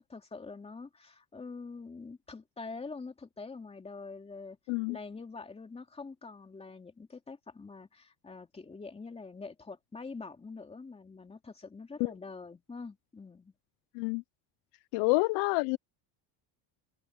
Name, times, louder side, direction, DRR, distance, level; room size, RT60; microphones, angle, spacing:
voice 1, 0.0-4.6 4.9-13.5, left 4 dB, 15° left, 2.8 m, -45 dB
voice 2, 14.9-15.8, left 27 dB, 75° left, 0.5 m, -28 dB
open air
cardioid pair, 150°, 44 cm